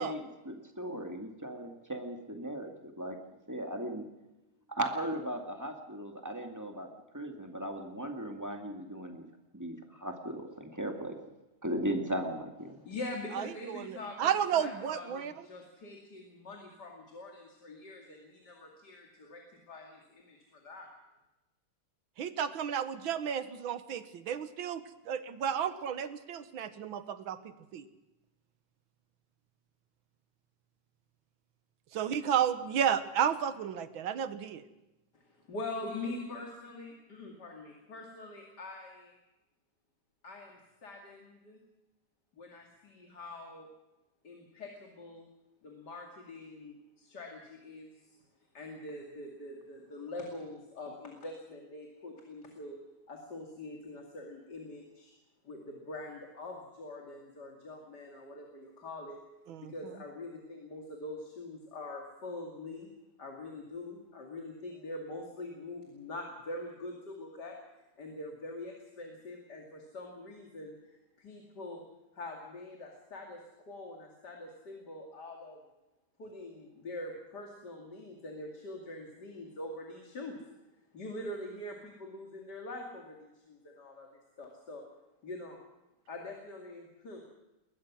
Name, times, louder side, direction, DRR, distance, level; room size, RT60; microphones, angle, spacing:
voice 1, 0.0-2.7 3.0-3.2 3.5-4.0 4.7-6.9 7.1-9.3 9.5-11.2 11.6-12.8, right 1 dB, 10° right, 3 dB, 2.1 m, -37 dB
voice 2, 12.8-20.9 35.1-39.1 40.2-41.6 42.3-43.7 44.2-45.2 45.6-47.9 48.5-52.8 53.1-55.1 55.4-59.2 59.6-62.9 63.2-67.6 68.0-70.7 71.2-71.8 72.1-73.4 73.7-75.6 76.2-80.4 80.9-84.1 84.4-84.8 85.2-85.6 86.1-87.2, left 2 dB, 50° left, 1 dB, 3.0 m, -44 dB
voice 3, 13.3-15.4 22.2-27.8 31.9-34.6 59.5-59.7, right 8 dB, 70° right, 12 dB, 1.8 m, -32 dB
21.5 x 20.0 x 6.2 m, 0.99 s
omnidirectional pair, 2.4 m